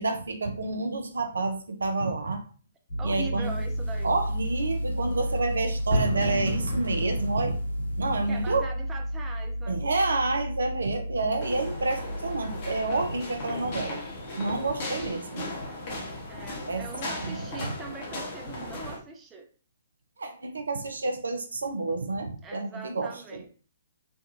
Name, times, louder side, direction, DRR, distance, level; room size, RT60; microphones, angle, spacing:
voice 1, 0.0-2.4 3.0-3.6 4.0-7.6 8.0-8.7 9.7-14.0 14.4-15.4 16.7-16.8 17.2-17.7 20.2-23.1, right 3 dB, 70° right, 5 dB, 0.6 m, -29 dB
Piano, 2.9-13.2, equal, 60° left, 1.6 m, -32 dB
voice 2, 3.0-4.1 8.3-9.8 16.3-19.5 22.4-23.5, right 5 dB, 15° right, 2 dB, 0.4 m, -41 dB
sound 1, 3.4-8.6, equal, 85° right, 1.1 m, -34 dB
sound 2, 11.4-19.0, left 2 dB, 40° left, 1.1 m, -37 dB
3.5 x 2.3 x 2.7 m, 0.40 s
figure-of-eight pair, 125°, 0 cm